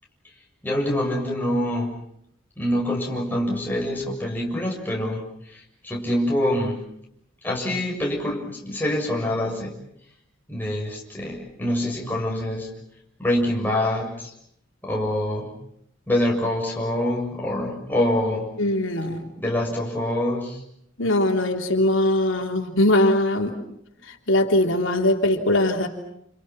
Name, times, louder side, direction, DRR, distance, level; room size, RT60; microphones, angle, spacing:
voice 1, 0.6-1.9 2.6-6.8 7.4-9.7 10.5-12.7 13.2-14.3 14.8-15.5 16.1-18.5 19.4-20.6, left 1 dB, 10° left, -2 dB, 7.0 m, -25 dB
voice 2, 18.6-19.3 21.0-23.5 24.1-25.9, left 1 dB, 85° left, 2 dB, 3.7 m, -21 dB
29.5 x 29.5 x 6.1 m, 0.74 s
head